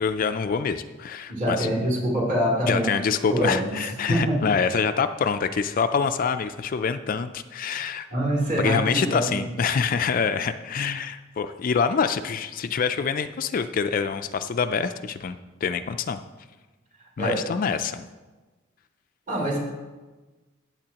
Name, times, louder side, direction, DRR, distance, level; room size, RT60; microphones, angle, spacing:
voice 1, 0.0-1.7 2.7-8.1 8.6-16.2 17.2-18.0, left 6 dB, 40° left, 9 dB, 0.3 m, -26 dB
voice 2, 1.3-2.9 3.3-3.7 4.1-4.4 8.1-9.5 17.2-17.5 19.3-19.6, right 1 dB, 40° right, -3 dB, 2.8 m, -25 dB
15.0 x 8.6 x 2.9 m, 1.2 s
head